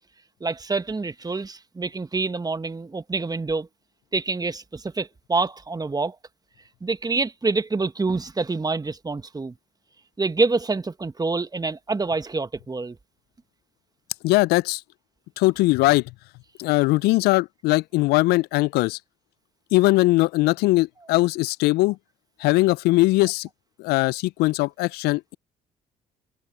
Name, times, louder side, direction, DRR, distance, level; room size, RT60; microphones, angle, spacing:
voice 1, 0.4-3.7 4.1-6.2 6.8-9.5 10.2-13.0, right 3 dB, 20° right, 1.7 m, -26 dB
voice 2, 14.2-14.8 15.4-16.0 16.6-19.0 19.7-22.0 22.4-23.5 23.8-25.3, left 20 dB, 65° left, 0.6 m, -20 dB
hypercardioid pair, 55°, 18 cm